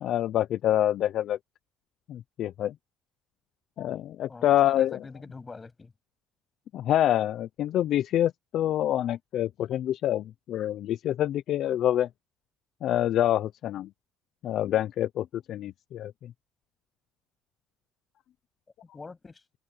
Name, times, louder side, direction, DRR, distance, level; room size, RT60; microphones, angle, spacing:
voice 1, 0.0-1.4 2.1-2.7 3.8-5.0 6.7-12.1 12.8-13.9 14.4-16.3, left 12 dB, 45° left, 0.5 m, -26 dB
voice 2, 4.3-5.9 18.9-19.4, left 4 dB, 15° left, 7.6 m, -44 dB
cardioid pair, 165°, 0 cm